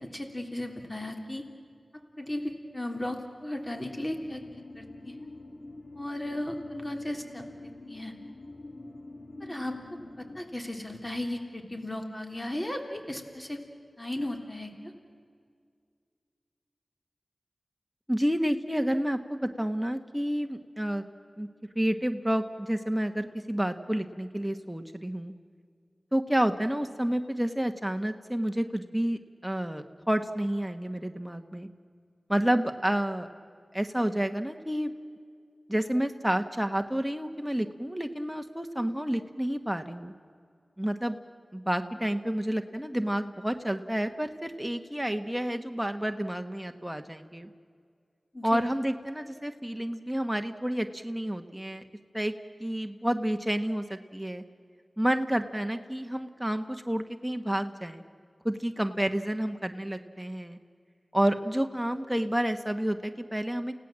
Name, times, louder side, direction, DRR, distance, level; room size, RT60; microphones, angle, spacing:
voice 1, 0.0-1.4 2.2-4.4 4.7-5.1 5.9-8.1 9.4-9.7 10.2-13.6 14.0-14.9 48.3-48.6, left 1 dB, 25° left, 4 dB, 3.3 m, -35 dB
sound 1, 4.0-10.4, left 2 dB, 65° left, 3.1 m, -45 dB
voice 2, 18.1-21.0 21.4-21.5 21.7-25.3 26.1-31.7 32.3-33.3 33.7-34.9 35.7-40.1 40.8-41.2 41.5-47.5 48.4-51.8 52.1-52.3 52.6-54.4 55.0-58.0 58.4-60.6 61.1-63.7, equal, 5° right, 6 dB, 1.3 m, -30 dB
29.5 x 17.0 x 7.5 m, 2.2 s
wide cardioid pair, 45°, 0 cm